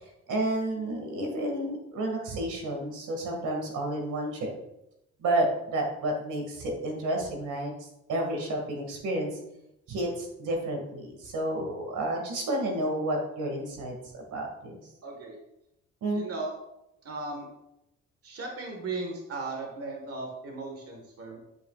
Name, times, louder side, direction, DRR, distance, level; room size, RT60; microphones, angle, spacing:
voice 1, 0.3-4.5 5.2-7.7 8.1-9.3 9.9-14.8 16.0-16.3, right 1 dB, 80° right, 1 dB, 2.0 m, -30 dB
voice 2, 15.0-15.4 16.1-16.6 17.0-17.5 18.2-21.4, right 3 dB, 50° right, 1 dB, 1.5 m, -36 dB
10.5 x 5.6 x 2.4 m, 0.86 s
cardioid pair, 90°, 30 cm